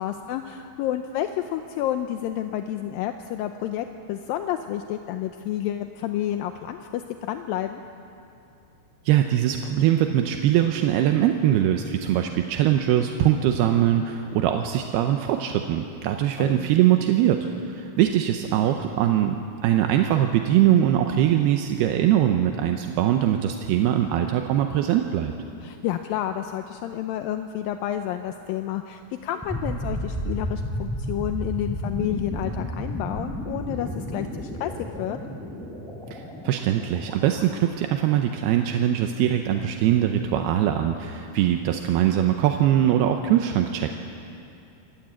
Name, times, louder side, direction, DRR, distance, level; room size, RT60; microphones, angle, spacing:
voice 1, 0.0-7.8 16.4-16.7 25.6-34.7 35.0-35.2, left 11 dB, 80° left, 7 dB, 2.1 m, -30 dB
voice 2, 9.1-19.4 19.6-25.3 36.1-43.9, right 11 dB, 80° right, 5 dB, 2.7 m, -22 dB
sound 1, 29.4-38.3, equal, ahead, 3.4 m, -33 dB
26.5 x 14.5 x 8.8 m, 2.7 s
omnidirectional pair, 4.7 m